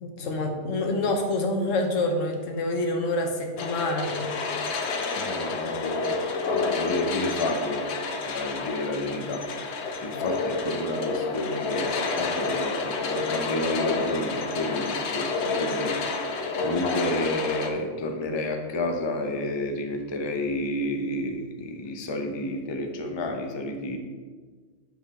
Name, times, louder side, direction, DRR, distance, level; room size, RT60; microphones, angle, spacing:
voice 1, 0.0-4.1 10.1-10.2, left 2 dB, 85° left, 3 dB, 1.2 m, -27 dB
sound 1, 3.6-17.7, left 4 dB, 65° left, 0.9 m, -29 dB
voice 2, 5.1-6.1 6.5-7.9 8.2-9.5 10.0-24.0, left 1 dB, 30° left, 4 dB, 0.5 m, -30 dB
7.1 x 3.9 x 4.2 m, 1.5 s
omnidirectional pair, 1.3 m